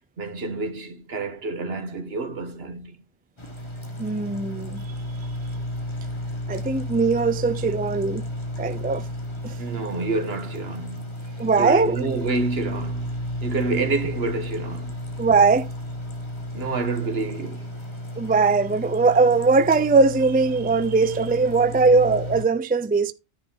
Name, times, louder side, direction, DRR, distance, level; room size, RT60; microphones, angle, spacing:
voice 1, 0.2-3.0 9.6-11.1 11.6-13.1 13.4-15.0 16.5-17.7, right 3 dB, 75° right, 1.6 m, -28 dB
sound 1, 3.4-22.5, left 1 dB, 25° left, 1.8 m, -33 dB
voice 2, 4.0-4.8 6.5-8.2 8.6-9.1 9.4-9.6 11.4-12.0 15.2-15.7 18.2-23.1, right 4 dB, 15° right, 0.4 m, -20 dB
10.5 x 4.1 x 5.8 m
omnidirectional pair, 1.0 m